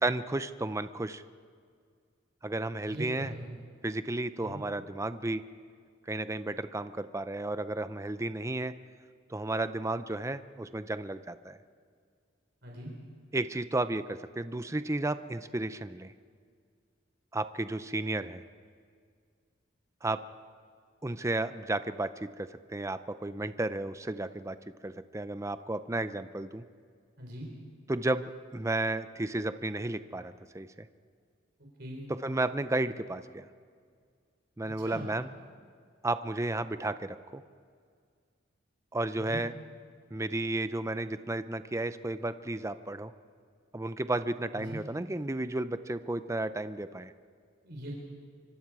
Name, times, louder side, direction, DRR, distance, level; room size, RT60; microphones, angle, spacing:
voice 1, 0.0-1.2 2.4-3.3 3.8-5.4 6.1-8.7 9.3-11.6 13.3-16.1 17.3-18.4 20.0-20.2 21.0-24.6 24.8-26.6 27.9-30.9 32.2-33.5 34.6-35.3 36.0-37.4 38.9-39.5 40.1-43.1 43.7-47.1, right 2 dB, 15° right, 12 dB, 0.5 m, -33 dB
voice 2, 2.8-3.5 4.4-4.6 12.6-12.9 27.2-27.5 31.8-32.0 34.6-35.1 39.1-39.4 44.5-44.8 47.6-48.0, right 1 dB, 60° right, -1 dB, 3.8 m, -41 dB
25.0 x 24.5 x 4.8 m, 2.1 s
head